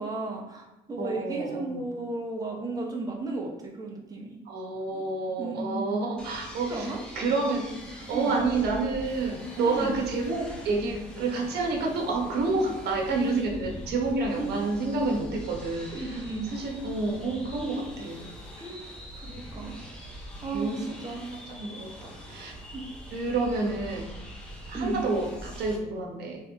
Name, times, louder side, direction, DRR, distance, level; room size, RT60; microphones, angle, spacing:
voice 1, 0.0-4.4 4.9-5.0 5.4-5.9 6.7-7.0 8.1-8.4 9.7-10.0 14.3-14.6 15.9-16.5 18.6-18.9 19.1-19.9 20.4-21.3 22.7-22.8 24.7-25.0, right 2 dB, 20° right, 0 dB, 0.9 m, -34 dB
voice 2, 1.0-1.8 4.5-6.9 7.1-15.9 16.5-18.3 20.5-20.8 21.5-22.5 23.1-24.1 24.7-26.4, right 3 dB, 75° right, 1 dB, 1.0 m, -29 dB
sound 1, 6.2-25.8, equal, 5° left, 0.8 m, -43 dB
3.4 x 3.1 x 3.5 m, 1.0 s
cardioid pair, 110°, 17 cm